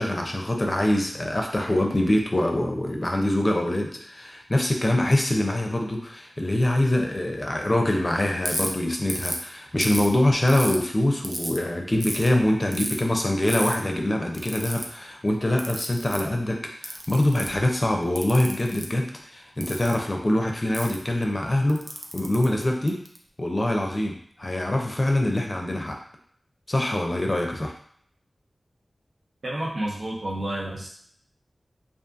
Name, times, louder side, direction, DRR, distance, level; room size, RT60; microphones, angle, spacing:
voice 1, 0.0-21.9 22.1-23.0 23.4-26.0 26.7-27.7, left 1 dB, 35° left, 2 dB, 0.5 m, -24 dB
Ratchet pawl, 8.4-8.7 9.1-9.4 9.8-10.8 11.2-11.6 12.0-12.3 12.7-13.0 13.5-13.7 14.3-14.8 15.6-16.2 16.8-17.6 18.1-18.8 19.6-19.9 20.7-20.9 21.7-23.2, right 1 dB, 35° right, 0.4 m, -32 dB
voice 2, 29.4-30.9, right 1 dB, 80° right, -5 dB, 0.7 m, -30 dB
2.5 x 2.5 x 2.5 m, 0.63 s
wide cardioid pair, 55°, 0 cm